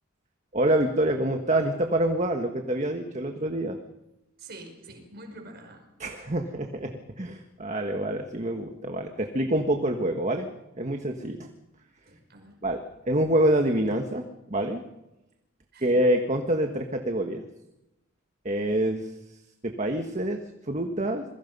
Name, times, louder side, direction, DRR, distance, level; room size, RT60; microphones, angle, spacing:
voice 1, 0.5-3.8 6.0-10.5 10.8-11.5 12.6-14.8 15.8-17.4 18.4-19.1 19.6-20.4 20.7-21.2, right 1 dB, 35° right, 5 dB, 1.6 m, -26 dB
voice 2, 4.4-5.9 12.1-12.6 15.7-15.9, right 2 dB, 50° right, 5 dB, 5.3 m, -46 dB
27.0 x 22.0 x 5.5 m, 0.95 s
head